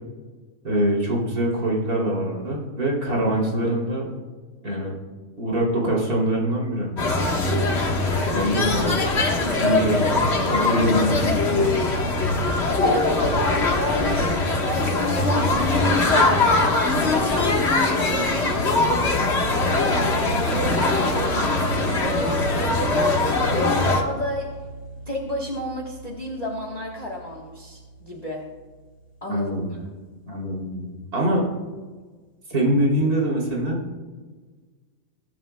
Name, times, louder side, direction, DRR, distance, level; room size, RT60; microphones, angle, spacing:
voice 1, 0.6-4.1 4.6-4.9 5.4-6.9 8.3-9.0 9.4-11.7 29.3-29.7 30.3-31.4 32.5-33.8, right 1 dB, 70° right, -3 dB, 3.5 m, -24 dB
sound 1, 7.0-24.0, left 2 dB, 45° left, 1.6 m, -21 dB
voice 2, 7.8-8.5 12.8-18.4 18.8-22.9 23.5-24.6 25.1-28.5 29.2-29.8, left 1 dB, 25° left, -1 dB, 1.3 m, -31 dB
sound 2, 18.9-29.8, right 2 dB, 5° left, 3.4 m, -36 dB
21.0 x 11.0 x 2.2 m, 1.4 s
omnidirectional pair, 1.6 m